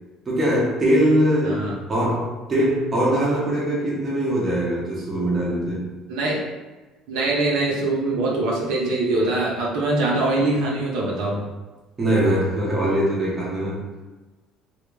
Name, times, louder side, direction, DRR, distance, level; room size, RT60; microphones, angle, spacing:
voice 1, 0.3-5.9 12.0-13.9, right 1 dB, 20° right, -5 dB, 0.9 m, -22 dB
voice 2, 6.1-6.4 7.1-11.5, right 2 dB, 75° right, -4 dB, 0.8 m, -23 dB
3.1 x 2.4 x 3.2 m, 1.2 s
cardioid pair, 145°, 0 cm